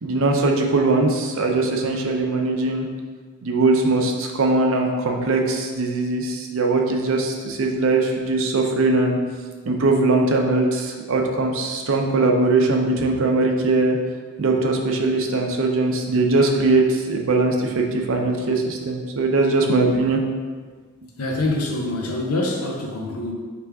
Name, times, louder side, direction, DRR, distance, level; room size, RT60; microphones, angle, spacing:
voice 1, 0.0-2.9 3.4-9.2 9.7-14.0 14.4-20.2, right 3 dB, 65° right, 2 dB, 0.6 m, -20 dB
voice 2, 21.2-23.3, left 2 dB, 80° left, 1 dB, 0.7 m, -25 dB
3.4 x 3.3 x 4.7 m, 1.5 s
head